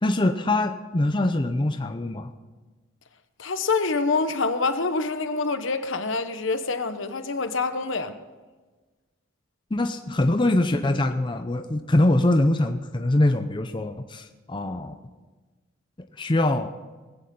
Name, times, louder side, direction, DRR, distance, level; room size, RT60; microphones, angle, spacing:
voice 1, 0.0-2.3 9.7-15.0 16.2-16.7, left 1 dB, 25° left, 7 dB, 0.6 m, -23 dB
voice 2, 3.4-8.1, left 3 dB, 70° left, 9 dB, 1.0 m, -26 dB
20.0 x 9.0 x 5.5 m, 1.3 s
head